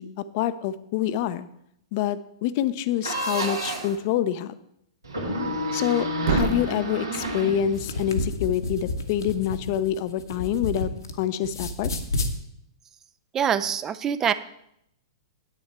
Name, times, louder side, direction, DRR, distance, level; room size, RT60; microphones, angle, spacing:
voice 1, 0.0-1.5 1.9-4.5 5.7-10.9 11.2-11.9, left 10 dB, 45° left, 14 dB, 0.6 m, -26 dB
sound 1, 3.0-4.0 5.0-8.1, equal, 85° right, 2.2 m, -29 dB
Thump thud, 5.4-9.5, right 6 dB, 50° right, 1.0 m, -35 dB
sound 2, 7.6-11.1 11.4-12.3, left 2 dB, 70° left, 1.1 m, -30 dB
voice 2, 13.3-14.3, right 8 dB, 20° right, 14 dB, 0.4 m, -24 dB
9.9 x 8.2 x 4.6 m, 0.75 s
figure-of-eight pair, 105°, 2 cm